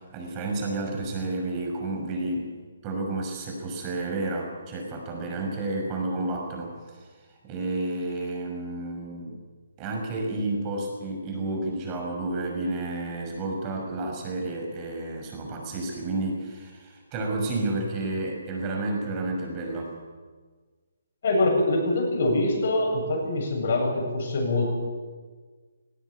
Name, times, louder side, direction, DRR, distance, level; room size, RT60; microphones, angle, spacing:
voice 1, 0.1-2.5 2.8-6.7 7.0-7.1 7.4-9.4 9.8-19.9, right 2 dB, 25° right, 1 dB, 5.8 m, -31 dB
voice 2, 21.2-24.7, left 2 dB, 55° left, 0 dB, 7.8 m, -24 dB
19.0 x 16.5 x 8.4 m, 1.5 s
figure-of-eight pair, 140°, 0 cm